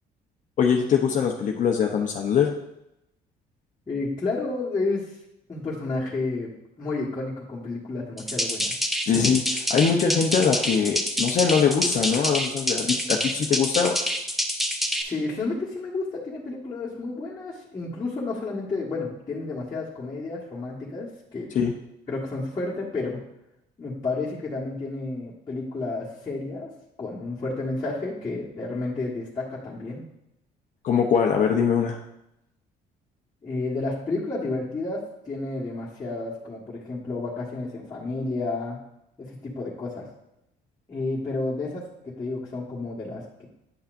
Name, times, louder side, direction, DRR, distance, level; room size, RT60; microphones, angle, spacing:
voice 1, 0.6-2.5 9.1-14.0 21.5-21.7 30.8-32.0, left 6 dB, 50° left, 1 dB, 0.8 m, -22 dB
voice 2, 3.9-5.2 5.5-6.5 6.8-8.7 15.0-21.5 22.1-23.2 23.8-26.7 27.0-30.0 33.4-38.8 39.2-40.1 40.9-43.4, left 3 dB, 20° left, -8 dB, 1.6 m, -31 dB
sound 1, 8.2-15.0, equal, ahead, 0.8 m, -27 dB
10.0 x 5.6 x 2.6 m, 0.83 s
cardioid pair, 110°, 17 cm